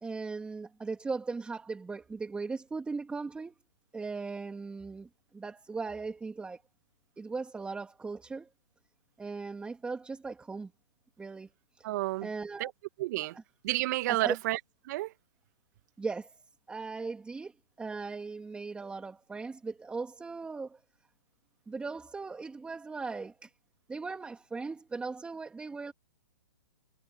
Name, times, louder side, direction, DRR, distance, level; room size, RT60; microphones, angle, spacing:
voice 1, 0.0-3.5 3.9-6.6 7.2-8.5 9.2-10.7 11.2-11.5 11.8-11.9 12.2-12.7 13.3-13.4 14.1-14.4 16.0-16.3 16.7-17.5 17.8-20.8 21.7-23.5 23.9-25.9, right 4 dB, 5° right, 3.1 m, -38 dB
voice 2, 11.8-12.3 12.6-12.7 13.0-13.3 13.6-14.6 14.9-15.1, right 17 dB, 40° right, 2.4 m, -30 dB
hypercardioid pair, 135°, 14 cm